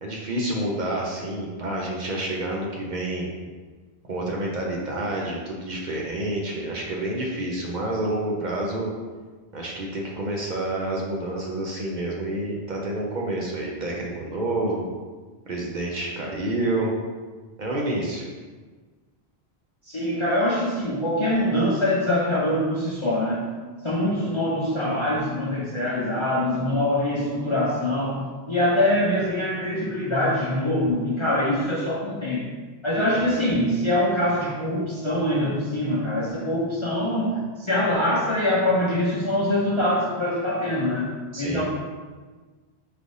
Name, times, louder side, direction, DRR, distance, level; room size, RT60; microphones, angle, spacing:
voice 1, 0.0-3.3 4.1-8.9 9.5-14.8 15.5-16.9 17.6-18.3 33.1-33.5 41.3-41.6, right 1 dB, 55° right, -2 dB, 0.7 m, -28 dB
voice 2, 19.8-23.5 23.8-28.2 28.5-32.5 32.8-41.6, left 1 dB, 40° left, -6 dB, 0.5 m, -24 dB
4.9 x 3.3 x 2.6 m, 1.4 s
omnidirectional pair, 1.1 m